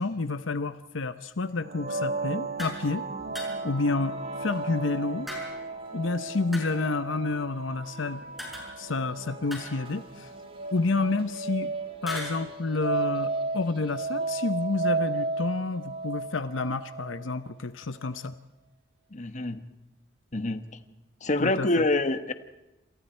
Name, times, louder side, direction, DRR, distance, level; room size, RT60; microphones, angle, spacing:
voice 1, 0.0-3.0 3.4-4.1 4.4-5.3 5.9-8.3 8.8-10.3 10.7-11.7 12.0-18.3 21.4-21.7, left 3 dB, 75° left, 11 dB, 0.9 m, -29 dB
sound 1, 1.6-17.3, right 3 dB, 55° right, 3.3 m, -34 dB
sound 2, 2.6-2.8 3.4-3.8 5.3-5.8 6.5-7.0 8.4-9.0 9.5-10.3 12.1-12.4, equal, ahead, 7.0 m, -40 dB
sound 3, 3.2-15.1, equal, 30° right, 2.0 m, -50 dB
voice 2, 19.1-19.6 20.3-20.6 21.2-22.3, left 2 dB, 40° left, 9 dB, 1.3 m, -26 dB
28.0 x 27.5 x 4.5 m, 1.0 s
head